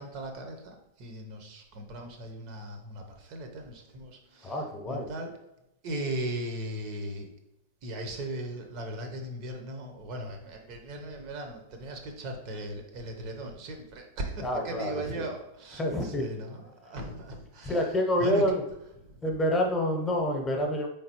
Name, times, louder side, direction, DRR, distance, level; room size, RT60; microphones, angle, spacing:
voice 1, 0.0-5.3 5.8-7.3 7.8-17.9 18.2-18.4 19.1-19.2, right 1 dB, 50° right, 4 dB, 0.8 m, -38 dB
voice 2, 4.4-5.1 14.4-15.2 15.8-16.2 17.6-18.6 19.2-20.9, left 1 dB, 15° left, 2 dB, 0.8 m, -27 dB
3.8 x 3.2 x 2.9 m, 0.86 s
hypercardioid pair, 100°, 0 cm